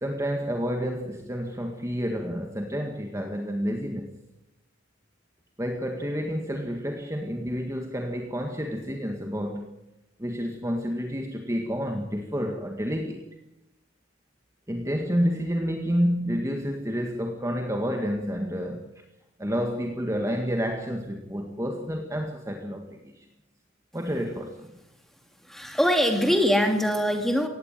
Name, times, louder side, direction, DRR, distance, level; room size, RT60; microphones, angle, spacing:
voice 1, 0.0-4.1 5.6-9.7 10.2-13.2 14.7-18.8 19.4-23.3 23.9-24.7, equal, 15° right, 3 dB, 1.7 m, -29 dB
voice 2, 25.5-27.5, equal, ahead, 4 dB, 2.5 m, -22 dB
18.5 x 16.0 x 9.2 m, 0.92 s
head